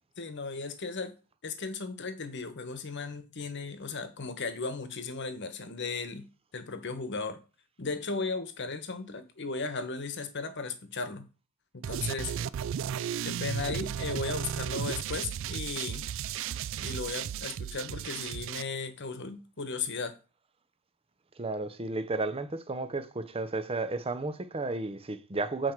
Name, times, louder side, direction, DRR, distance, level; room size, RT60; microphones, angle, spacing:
voice 1, 0.2-1.1 1.4-6.2 6.5-7.4 7.8-11.2 11.7-12.3 13.2-16.1 16.8-20.1, left 4 dB, 55° left, 1.1 m, -36 dB
sound 1, 11.8-18.6, right 9 dB, 60° right, 0.3 m, -34 dB
voice 2, 21.4-25.7, right 3 dB, 25° right, 0.7 m, -33 dB
7.8 x 4.7 x 4.6 m
head